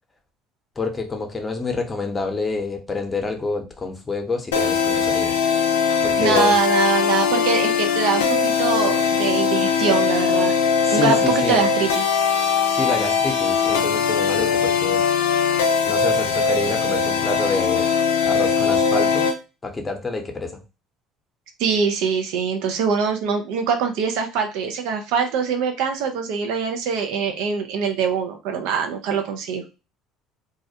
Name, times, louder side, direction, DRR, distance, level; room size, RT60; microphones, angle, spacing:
voice 1, 0.8-5.4 6.0-6.6 10.8-11.6 12.7-15.0 15.8-17.9 18.2-19.3 19.6-20.6, left 3 dB, 25° left, 4 dB, 0.7 m, -27 dB
sound 1, 4.5-19.4, left 6 dB, 90° left, 0.4 m, -20 dB
voice 2, 6.2-10.5 10.9-12.0 21.6-29.6, right 6 dB, 75° right, 5 dB, 0.5 m, -23 dB
2.4 x 2.1 x 2.7 m, 0.30 s
hypercardioid pair, 70°, 0 cm